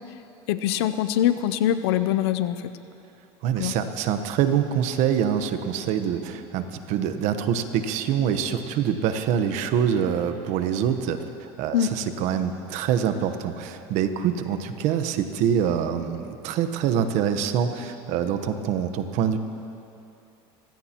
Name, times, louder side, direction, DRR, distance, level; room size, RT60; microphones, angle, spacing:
voice 1, 0.5-2.7 3.6-3.7 11.7-11.9, left 11 dB, 85° left, 11 dB, 0.6 m, -23 dB
voice 2, 3.4-19.4, right 8 dB, 65° right, 9 dB, 1.1 m, -25 dB
24.0 x 16.5 x 3.0 m, 2.7 s
supercardioid pair, 100°, 13 cm